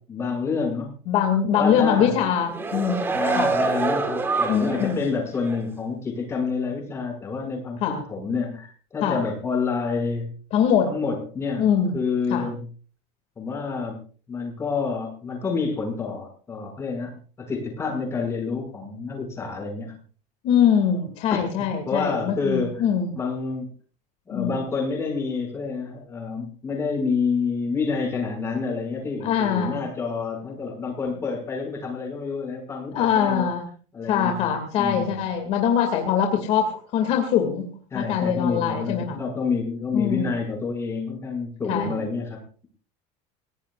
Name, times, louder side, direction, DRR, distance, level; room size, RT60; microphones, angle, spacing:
voice 1, 0.0-0.9 1.5-2.1 3.1-10.3 10.9-11.6 11.9-12.7 13.4-14.0 14.3-19.9 21.3-21.4 21.9-22.9 23.1-23.7 24.3-33.5 33.9-35.2 37.9-42.7, left 4 dB, 15° left, 1 dB, 6.3 m, -28 dB
voice 2, 1.1-3.5 4.5-5.0 7.8-8.0 9.0-9.2 10.5-10.9 11.6-12.0 12.3-12.5 20.4-23.1 24.3-24.6 29.2-29.8 32.9-33.7 34.1-39.2 39.9-40.3 41.7-42.0, left 8 dB, 45° left, 4 dB, 2.4 m, -23 dB
sound 1, 2.3-5.0 5.4-5.6, right 3 dB, 15° right, 1.6 m, -25 dB
27.0 x 17.5 x 2.5 m, 0.41 s
cardioid pair, 175°, 15 cm